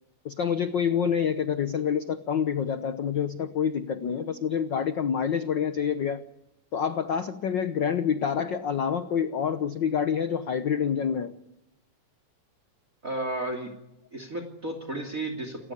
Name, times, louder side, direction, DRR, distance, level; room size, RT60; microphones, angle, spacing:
voice 1, 0.2-6.2 6.7-11.3, left 7 dB, 75° left, 10 dB, 1.0 m, -27 dB
voice 2, 13.0-13.7 14.1-15.7, right 1 dB, 25° right, 6 dB, 2.9 m, -33 dB
29.0 x 15.0 x 9.8 m, 0.87 s
omnidirectional pair, 3.4 m